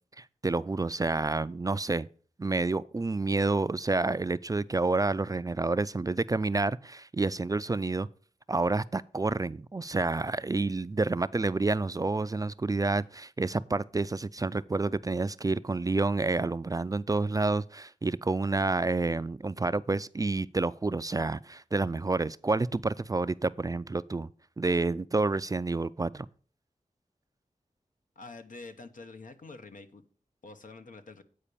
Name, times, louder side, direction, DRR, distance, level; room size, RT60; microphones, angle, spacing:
voice 1, 0.2-2.1 2.4-8.1 8.5-24.3 24.6-26.3, right 3 dB, 25° right, 0.3 m, -29 dB
voice 2, 28.2-30.0 30.4-31.2, left 3 dB, 75° left, 1.0 m, -46 dB
8.6 x 4.9 x 6.8 m
wide cardioid pair, 60°, 14 cm